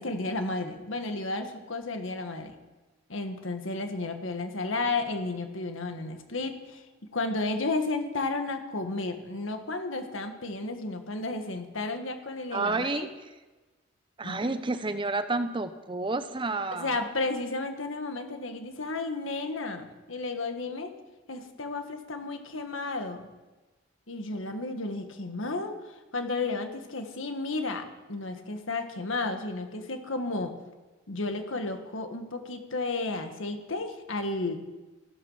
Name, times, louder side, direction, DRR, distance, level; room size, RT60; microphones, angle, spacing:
voice 1, 0.0-2.5 3.1-6.8 7.1-13.1 14.2-14.5 16.7-20.9 21.3-23.3 24.1-25.7 26.1-30.5 31.1-34.6, left 3 dB, 80° left, 6 dB, 1.7 m, -33 dB
voice 2, 12.5-13.3 14.2-17.0, right 3 dB, 25° right, 11 dB, 0.7 m, -30 dB
14.0 x 12.5 x 5.7 m, 1.2 s
head